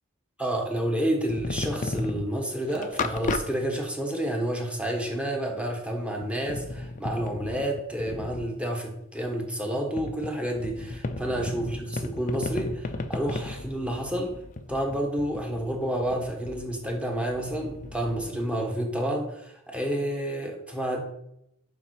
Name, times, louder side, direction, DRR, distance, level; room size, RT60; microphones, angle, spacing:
voice 1, 0.4-14.4 14.7-21.0, right 1 dB, 5° right, 1 dB, 1.4 m, -29 dB
sound 1, 1.3-2.3 2.7-3.4 3.7-3.8 4.1-4.2 4.9-5.0 6.2-8.5 10.0-18.3, left 2 dB, 40° left, 0.6 m, -35 dB
7.0 x 6.1 x 4.9 m, 0.78 s
head